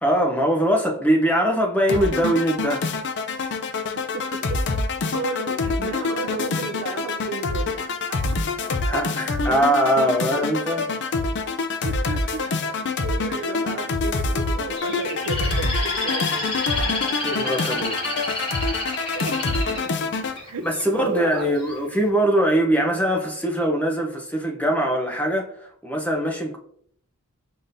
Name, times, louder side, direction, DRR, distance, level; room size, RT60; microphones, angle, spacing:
voice 1, 0.0-2.8 3.4-3.5 8.9-10.8 11.8-11.9 17.2-18.4 20.6-26.6, right 1 dB, 5° left, 0.6 m, -22 dB
sound 1, 1.9-20.4, left 3 dB, 55° left, 0.5 m, -26 dB
voice 2, 4.1-4.6 5.1-8.2 8.7-8.8 10.3-10.4 11.8-12.5 13.0-17.2 19.1-19.9 20.4-20.7 20.9-21.5, right 4 dB, 75° right, 0.5 m, -33 dB
Bird, 14.8-20.8 21.4-21.8, left 2 dB, 25° left, 1.3 m, -29 dB
5.6 x 3.6 x 2.6 m
head